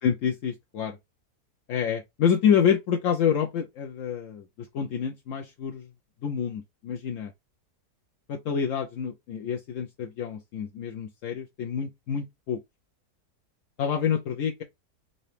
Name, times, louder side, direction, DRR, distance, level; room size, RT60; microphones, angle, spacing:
voice 1, 0.0-1.0 1.7-4.4 4.7-5.9 6.2-7.3 8.3-12.6 13.8-14.6, left 7 dB, 70° left, 0.7 m, -27 dB
3.9 x 2.8 x 3.1 m
omnidirectional pair, 1.8 m